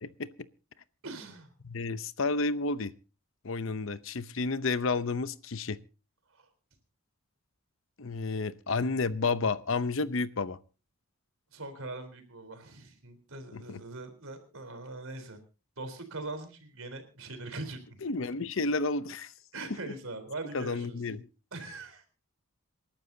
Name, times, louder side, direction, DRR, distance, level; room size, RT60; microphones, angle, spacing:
voice 1, 1.0-1.5 6.3-6.5 11.5-15.4 15.8-18.4 19.5-21.0 21.5-22.0, right 2 dB, 75° right, 3.8 m, -42 dB
voice 2, 1.6-2.9 3.4-5.8 8.0-10.6 13.5-13.8 18.0-19.3 20.5-21.2, left 3 dB, 65° left, 0.7 m, -31 dB
27.5 x 12.0 x 2.8 m
head